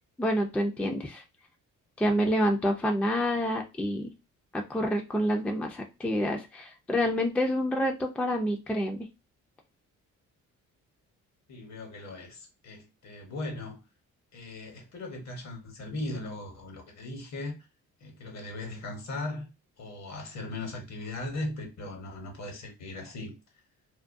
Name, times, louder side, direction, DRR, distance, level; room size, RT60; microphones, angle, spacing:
voice 1, 0.2-1.2 2.0-4.1 4.5-9.1, equal, 5° left, 0.3 m, -28 dB
voice 2, 11.5-13.8 14.3-17.6 18.0-19.5 19.8-23.3, left 2 dB, 60° left, 1.0 m, -38 dB
2.4 x 2.2 x 2.5 m
cardioid pair, 90°, 30 cm